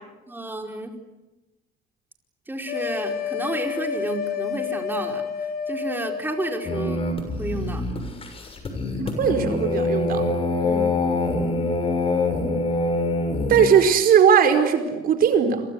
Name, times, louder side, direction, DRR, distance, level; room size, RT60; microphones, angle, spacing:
voice 1, 0.3-1.0 2.5-5.2 5.7-7.0 7.4-7.8 10.6-11.0, right 2 dB, 10° right, 3 dB, 4.5 m, -31 dB
sound 1, 2.7-7.1, left 7 dB, 65° left, 4.4 m, -30 dB
sound 2, 6.6-13.7, left 2 dB, 35° left, 6.6 m, -25 dB
voice 2, 9.2-10.3 13.5-15.6, right 7 dB, 60° right, 7 dB, 4.7 m, -18 dB
29.5 x 24.0 x 8.3 m, 1.1 s
cardioid pair, 110°, 17 cm